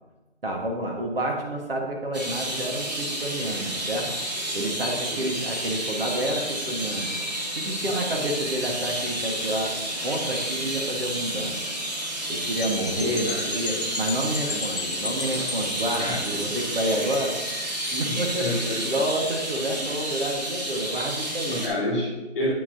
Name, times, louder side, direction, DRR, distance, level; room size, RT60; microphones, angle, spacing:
voice 1, 0.4-4.1 4.5-7.1 7.5-9.7 10.0-11.5 12.3-17.3 17.9-18.5 18.8-21.6 22.4-22.5, right 1 dB, 55° right, 0 dB, 1.5 m, -29 dB
sound 1, 2.1-21.7, right 1 dB, 40° right, 1.4 m, -31 dB
voice 2, 5.1-5.4 7.8-8.1 13.0-13.5 14.4-15.5 16.0-16.5 18.0-19.0 21.5-22.5, left 1 dB, 10° left, -14 dB, 2.8 m, -32 dB
sound 2, 12.6-17.9, left 4 dB, 50° left, 1.1 m, -36 dB
8.6 x 8.0 x 2.7 m, 1.1 s
hypercardioid pair, 180°, 34 cm